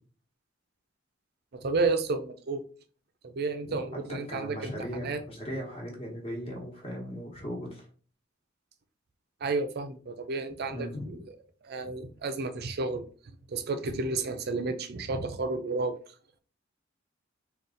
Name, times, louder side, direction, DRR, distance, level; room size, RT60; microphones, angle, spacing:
voice 1, 1.5-2.6 3.2-5.2 9.4-11.4 11.6-13.1 13.5-16.0, right 3 dB, 55° right, 0.5 m, -31 dB
voice 2, 4.1-7.8 10.7-11.2, equal, 30° left, 1.1 m, -38 dB
4.0 x 2.4 x 3.8 m
head